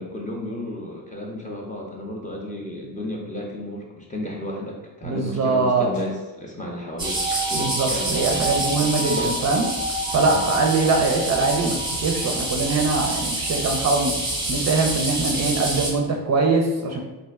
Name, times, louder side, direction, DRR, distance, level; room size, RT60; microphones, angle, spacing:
voice 1, 0.0-7.2 7.5-8.5 10.2-10.4 15.5-15.7, left 1 dB, 15° left, -2 dB, 0.5 m, -33 dB
voice 2, 5.0-5.9 7.5-9.7 10.1-14.2 14.5-17.0, right 3 dB, 35° right, 1 dB, 0.4 m, -22 dB
Clapping, 5.9-6.2 7.3-7.5 8.7-8.8 9.2-9.4 10.5-10.6, left 3 dB, 60° left, 0.8 m, -34 dB
sound 1, 7.0-15.9, right 2 dB, 10° right, 0.8 m, -26 dB
2.5 x 2.1 x 3.4 m, 1.1 s
cardioid pair, 85°, 46 cm